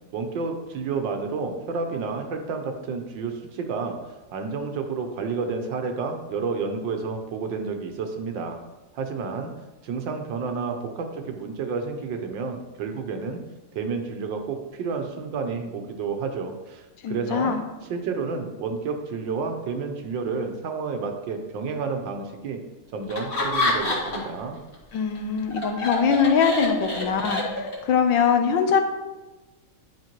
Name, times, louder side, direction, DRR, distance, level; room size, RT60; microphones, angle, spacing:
voice 1, 0.1-8.6 8.9-9.5 9.8-13.4 13.7-17.5 17.9-22.6 22.9-24.6, right 4 dB, 75° right, 5 dB, 1.5 m, -30 dB
voice 2, 17.0-17.6 24.9-28.8, left 6 dB, 75° left, 6 dB, 1.5 m, -22 dB
Laughter, 23.1-24.4 24.7-27.9, left 2 dB, 30° left, 1.7 m, -27 dB
10.5 x 5.6 x 3.0 m, 1.1 s
omnidirectional pair, 2.1 m